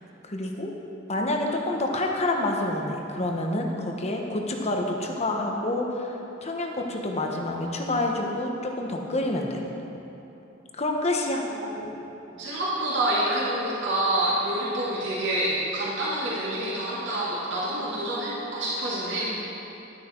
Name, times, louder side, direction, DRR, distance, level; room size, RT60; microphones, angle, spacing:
voice 1, 0.2-0.7 1.1-9.6 10.7-11.4, left 1 dB, 35° left, 1 dB, 1.1 m, -28 dB
voice 2, 12.3-19.3, right 1 dB, 65° right, -9 dB, 2.5 m, -27 dB
11.5 x 9.8 x 4.5 m, 3.0 s
head